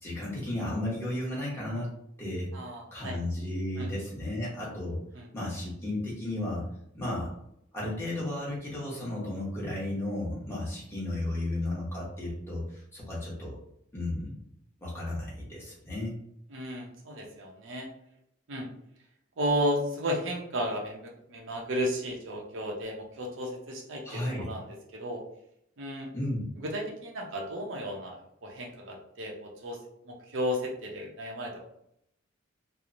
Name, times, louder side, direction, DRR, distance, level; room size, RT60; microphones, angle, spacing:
voice 1, 0.0-2.5 2.9-5.0 5.3-6.6 6.9-7.3 7.7-13.5 13.9-14.3 14.8-16.1 24.0-24.5 26.1-26.4, left 1 dB, 10° left, -7 dB, 0.9 m, -34 dB
voice 2, 2.5-3.2 3.8-3.9 5.1-5.3 16.5-17.9 18.5-18.7 19.4-24.7 24.9-25.2 25.8-26.1 26.6-29.8 30.0-31.6, equal, 65° right, -1 dB, 0.6 m, -33 dB
2.9 x 2.0 x 2.5 m, 0.74 s
head